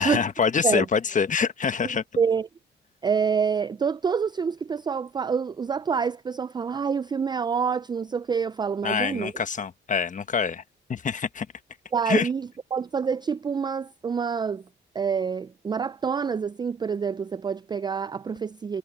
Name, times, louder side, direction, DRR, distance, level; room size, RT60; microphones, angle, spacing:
voice 1, 0.0-2.0 8.8-10.6 10.9-11.5 12.0-12.3, left 6 dB, 40° left, 1.4 m, -25 dB
voice 2, 2.2-2.5 3.0-9.3 11.9-14.6 14.9-18.8, right 6 dB, 20° right, 0.4 m, -27 dB
cardioid pair, 90°, 20 cm